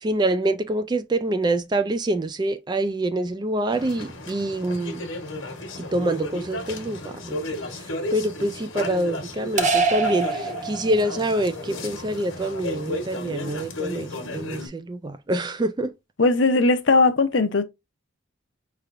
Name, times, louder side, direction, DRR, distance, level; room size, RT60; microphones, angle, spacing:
voice 1, 0.0-5.0 5.8-7.4 7.7-15.9, right 1 dB, 20° right, 0.3 m, -26 dB
sound 1, 3.7-14.7, left 2 dB, 80° left, 1.3 m, -34 dB
sound 2, 9.6-11.2, right 4 dB, 35° right, 0.7 m, -24 dB
voice 2, 16.2-17.6, left 3 dB, 65° left, 0.7 m, -18 dB
5.5 x 3.2 x 2.5 m
head